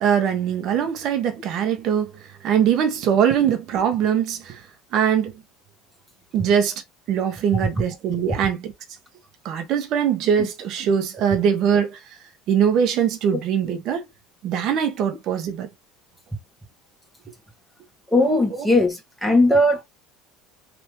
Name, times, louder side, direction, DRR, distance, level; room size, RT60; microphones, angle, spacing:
voice 1, 0.0-2.1 2.4-4.6 4.9-5.3 6.3-6.7 7.1-8.7 9.4-12.0 12.5-14.0 14.4-15.7 18.5-18.7, right 8 dB, 55° right, 1.2 m, -22 dB
voice 2, 18.1-19.8, left 1 dB, 5° left, 1.5 m, -18 dB
3.5 x 2.8 x 3.1 m
supercardioid pair, 105°, 0 cm